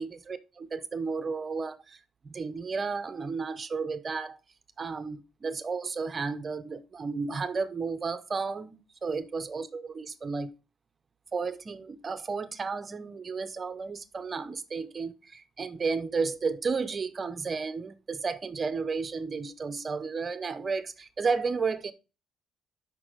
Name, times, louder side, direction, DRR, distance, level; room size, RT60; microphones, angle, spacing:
voice 1, 0.0-2.0 2.2-4.4 4.8-10.5 11.3-21.9, right 4 dB, 35° right, 0.7 m, -33 dB
6.0 x 5.3 x 4.9 m
cardioid pair, 105°, 0 cm